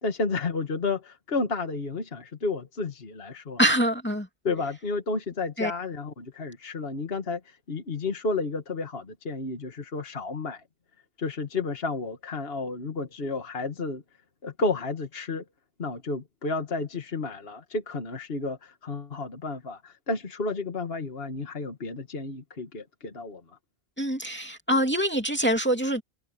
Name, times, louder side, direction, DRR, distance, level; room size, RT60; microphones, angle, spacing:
voice 1, 0.0-3.6 4.4-10.6 11.2-14.0 14.4-15.4 15.8-23.4, left 3 dB, 55° left, 1.9 m, -31 dB
voice 2, 3.6-4.3 5.6-5.7 24.0-26.0, equal, 10° left, 2.5 m, -24 dB
omnidirectional pair, 1.2 m